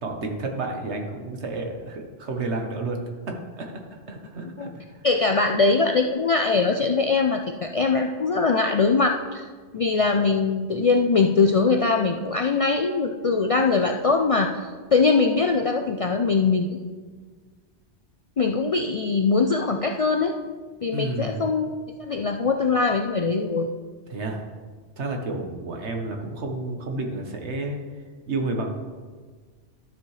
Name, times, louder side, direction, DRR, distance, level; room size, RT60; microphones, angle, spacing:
voice 1, 0.0-3.8 4.1-4.7 20.9-21.4 24.1-24.4 25.0-27.8 28.3-28.8, right 2 dB, 75° right, 3 dB, 1.4 m, -30 dB
voice 2, 5.0-9.4 9.7-16.7 18.4-20.3 20.8-21.7 22.0-23.7, left 4 dB, 65° left, 3 dB, 0.3 m, -22 dB
12.0 x 7.1 x 3.2 m, 1.5 s
omnidirectional pair, 1.2 m